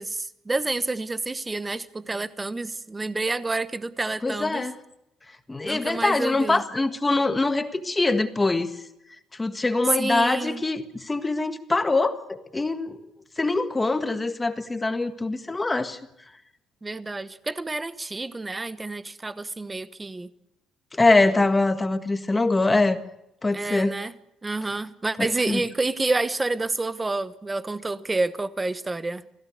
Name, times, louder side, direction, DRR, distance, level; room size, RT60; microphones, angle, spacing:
voice 1, 0.0-4.7 5.6-6.6 10.0-10.6 16.8-20.3 23.5-24.1 24.4-29.2, right 2 dB, 15° right, 14 dB, 1.1 m, -29 dB
voice 2, 4.2-4.7 5.5-8.7 9.4-13.0 13.4-16.0 21.0-23.0 23.4-23.9 25.5-25.6, left 2 dB, 15° left, 8 dB, 1.6 m, -23 dB
28.0 x 17.0 x 6.5 m, 0.83 s
cardioid pair, 160°, 0 cm